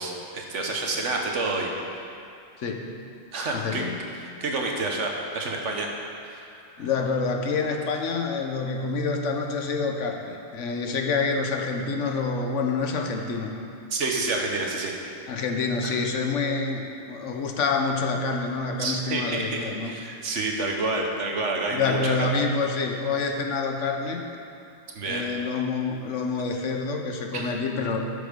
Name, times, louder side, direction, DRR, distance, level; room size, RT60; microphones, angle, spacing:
voice 1, 0.0-1.7 3.3-3.8 4.4-5.9 6.2-6.9 13.9-14.9 15.8-16.0 18.8-22.3 24.9-25.3 27.3-27.5, right 3 dB, 80° right, 1 dB, 1.5 m, -29 dB
voice 2, 2.6-2.9 3.5-4.0 6.8-13.6 15.3-19.9 21.7-24.2 25.1-28.0, left 4 dB, 90° left, 3 dB, 1.3 m, -27 dB
11.5 x 6.8 x 5.2 m, 2.5 s
omnidirectional pair, 1.2 m